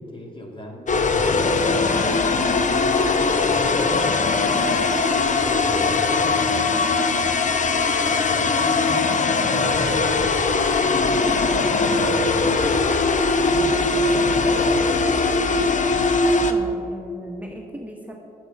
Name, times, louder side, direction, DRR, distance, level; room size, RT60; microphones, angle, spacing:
voice 1, 0.0-5.0 5.2-7.7 8.1-9.2 9.5-13.0 13.4-15.1, left 1 dB, 25° left, 1 dB, 2.0 m, -36 dB
sound 1, 0.9-16.5, left 3 dB, 45° left, 0.8 m, -20 dB
voice 2, 16.5-18.2, equal, 10° right, 0 dB, 1.3 m, -37 dB
8.0 x 7.2 x 6.0 m, 2.5 s
supercardioid pair, 45°, 18 cm